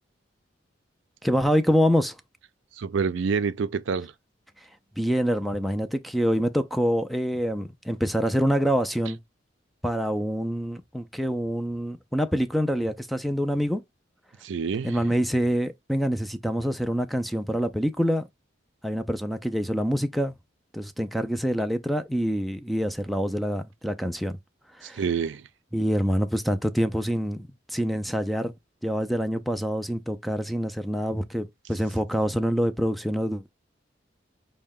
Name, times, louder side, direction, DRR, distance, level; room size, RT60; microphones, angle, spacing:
voice 1, 1.2-2.2 5.0-9.2 9.8-13.8 14.8-18.3 18.8-20.3 20.7-24.4 24.8-25.0 25.7-28.5 28.8-33.5, equal, ahead, 0.3 m, -26 dB
voice 2, 2.8-4.1 14.4-15.0 24.9-25.4, right 5 dB, 75° right, 0.4 m, -27 dB
5.3 x 2.1 x 3.5 m
head